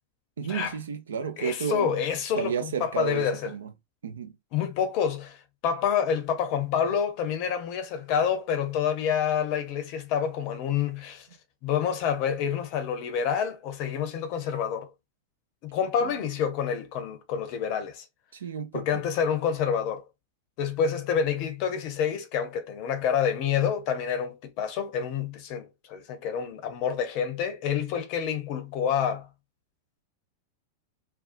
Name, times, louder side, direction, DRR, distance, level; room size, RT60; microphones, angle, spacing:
voice 1, 0.4-1.9 2.4-3.7 4.0-4.3 16.0-16.1 18.3-19.0, right 7 dB, 65° right, 0.5 m, -32 dB
voice 2, 1.4-3.5 4.5-5.4 5.6-11.3 11.6-14.9 15.6-18.0 18.7-20.0 20.6-29.3, left 7 dB, 45° left, 0.6 m, -28 dB
2.5 x 2.3 x 2.5 m
figure-of-eight pair, 90°, 0 cm